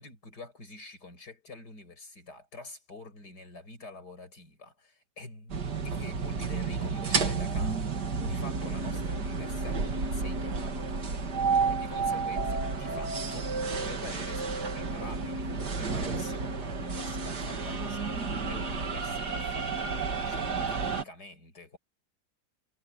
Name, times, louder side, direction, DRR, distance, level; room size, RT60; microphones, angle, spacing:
voice 1, 0.0-5.6 5.8-11.1 11.7-21.8, left 2 dB, 80° left, 7.3 m, -47 dB
sound 1, 5.5-21.0, right 4 dB, 85° right, 2.8 m, -31 dB
omnidirectional pair, 1.7 m